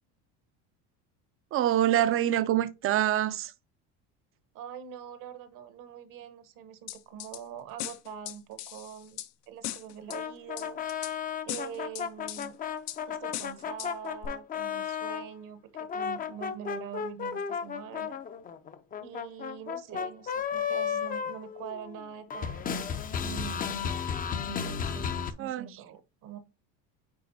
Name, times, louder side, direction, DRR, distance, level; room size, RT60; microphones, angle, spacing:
voice 1, 1.5-3.5 25.4-25.8, right 12 dB, 35° right, 0.6 m, -26 dB
voice 2, 4.5-10.8 11.4-12.6 13.1-18.2 19.0-22.9 23.2-23.8 24.4-26.4, right 9 dB, 60° right, 1.2 m, -44 dB
sound 1, 6.9-7.4 7.8-9.3 9.6-10.2 10.6-11.1 11.5-12.5 12.9-13.0 13.3-13.9 14.2-14.3, left 14 dB, 85° left, 0.9 m, -38 dB
sound 2, 10.1-15.3 15.7-22.0 22.3-25.3, left 7 dB, 25° left, 0.6 m, -34 dB
9.3 x 3.9 x 2.7 m
cardioid pair, 130°, 37 cm